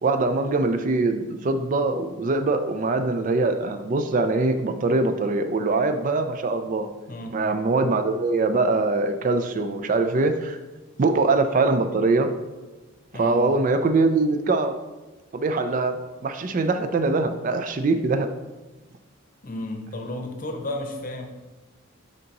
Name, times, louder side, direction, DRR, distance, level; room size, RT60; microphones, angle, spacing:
voice 1, 0.0-6.9 7.3-10.6 11.0-12.3 13.1-14.7 15.3-16.0 16.2-18.3, right 3 dB, 40° right, 8 dB, 0.3 m, -23 dB
voice 2, 7.1-7.4 13.1-13.4 19.4-21.3, left 1 dB, 40° left, 4 dB, 0.8 m, -33 dB
8.8 x 3.8 x 2.9 m, 1.2 s
head